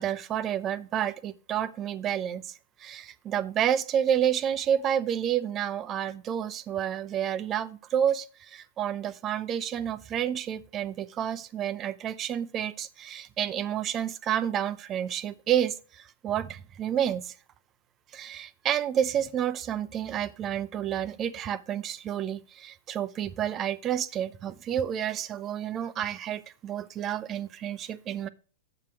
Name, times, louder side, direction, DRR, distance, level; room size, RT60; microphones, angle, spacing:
voice 1, 0.0-2.4 2.8-17.3 18.1-28.3, right 9 dB, 30° right, 0.5 m, -30 dB
7.3 x 5.8 x 6.1 m
figure-of-eight pair, 100°, 0 cm